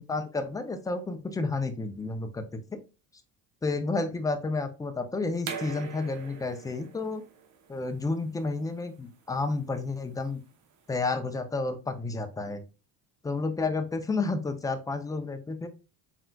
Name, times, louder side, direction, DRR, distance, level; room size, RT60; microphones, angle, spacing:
voice 1, 0.0-2.6 3.6-7.2 7.7-10.4 10.9-12.6 13.2-15.7, left 3 dB, 10° left, 7 dB, 0.4 m, -31 dB
sound 1, 5.4-11.0, right 6 dB, 55° right, 0.8 m, -43 dB
4.4 x 3.7 x 2.2 m, 0.32 s
cardioid pair, 125°, 37 cm